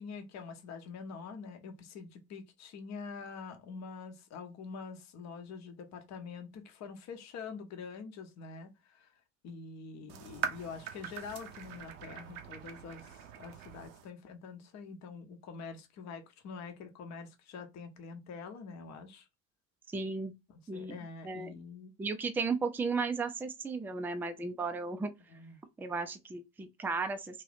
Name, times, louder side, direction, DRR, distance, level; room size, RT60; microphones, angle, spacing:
voice 1, 0.0-9.1 9.4-19.3 20.5-21.9 25.3-25.6, left 5 dB, 45° left, 0.9 m, -45 dB
sound 1, 10.1-14.1, right 7 dB, 70° right, 0.7 m, -42 dB
voice 2, 19.9-20.3 20.7-21.0 21.2-21.5 22.0-25.1 25.8-27.4, right 4 dB, 5° right, 0.4 m, -34 dB
2.7 x 2.6 x 3.3 m
hypercardioid pair, 70°, 37 cm